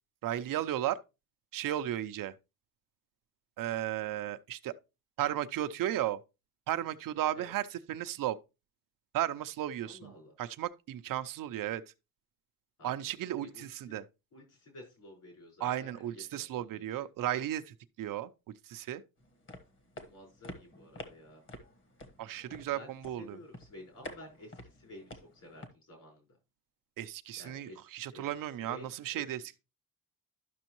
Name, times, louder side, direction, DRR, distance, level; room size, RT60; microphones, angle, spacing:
voice 1, 0.2-1.0 1.5-2.3 3.6-4.7 5.2-6.2 6.7-8.4 9.1-10.1 10.4-11.8 12.8-14.0 15.6-19.0 22.2-23.4 27.0-29.6, right 12 dB, 65° right, 0.6 m, -35 dB
voice 2, 9.8-10.3 12.8-14.0 14.3-17.0 20.0-21.4 22.7-22.9 23.2-26.3 27.4-28.3 28.6-29.2, left 1 dB, 60° left, 4.8 m, -52 dB
sound 1, 19.2-25.7, left 2 dB, 35° left, 1.4 m, -49 dB
11.5 x 6.1 x 3.0 m
cardioid pair, 150°, 35 cm